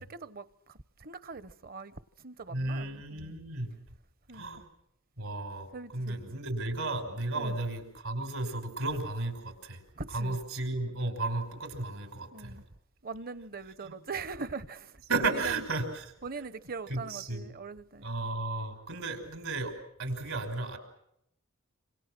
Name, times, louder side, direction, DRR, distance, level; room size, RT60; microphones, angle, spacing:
voice 1, 0.0-3.3 4.3-4.6 5.7-6.2 7.3-7.6 9.9-10.4 12.3-12.6 13.0-15.0 15.3-15.6 16.2-18.1, right 4 dB, 45° right, 0.9 m, -42 dB
voice 2, 2.5-3.8 4.3-4.6 5.2-9.8 10.1-12.6 13.8-13.9 15.1-16.1 16.9-17.5 18.0-19.7 20.0-20.8, right 2 dB, 75° right, 5.5 m, -34 dB
27.0 x 26.5 x 6.1 m
head